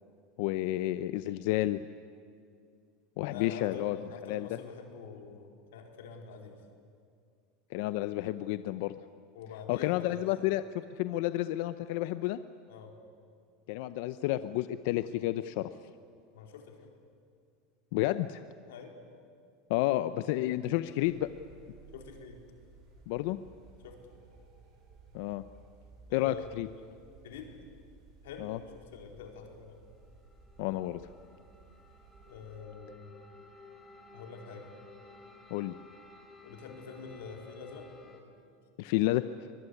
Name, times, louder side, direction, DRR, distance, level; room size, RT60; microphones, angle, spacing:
voice 1, 0.4-1.8 3.2-4.0 4.3-4.5 7.7-9.0 9.7-12.4 13.7-15.7 17.9-18.4 19.7-21.3 23.1-23.4 25.1-25.4 26.1-26.7 28.4-28.6 30.6-31.0 35.5-35.8 38.8-39.2, left 16 dB, 65° left, 13 dB, 0.7 m, -30 dB
voice 2, 3.3-6.6 9.3-10.2 12.7-13.0 16.3-16.9 18.7-19.0 21.9-22.4 23.8-24.0 26.1-26.7 27.2-27.6 28.2-29.8 32.3-33.2 34.1-34.7 36.4-37.9, left 5 dB, 90° left, 3 dB, 4.3 m, -46 dB
sound 1, 21.0-32.6, right 4 dB, 50° right, 7.0 m, -57 dB
sound 2, 29.7-38.2, left 2 dB, 10° left, 4.3 m, -56 dB
23.5 x 21.0 x 9.9 m, 2.3 s
supercardioid pair, 135°, 0 cm